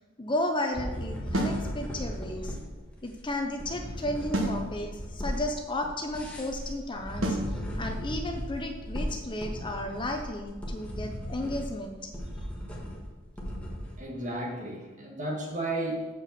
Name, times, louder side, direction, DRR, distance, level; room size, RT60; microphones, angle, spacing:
voice 1, 0.2-2.6 3.0-12.1, left 1 dB, 25° left, 4 dB, 0.6 m, -33 dB
sound 1, 0.7-14.0, equal, 5° left, 1.5 m, -37 dB
sound 2, 1.3-1.6 4.3-4.6 7.2-7.5, right 1 dB, 80° right, 1.4 m, -27 dB
voice 2, 14.0-16.1, right 1 dB, 40° right, -1 dB, 1.9 m, -33 dB
6.9 x 5.5 x 7.2 m, 1.2 s
head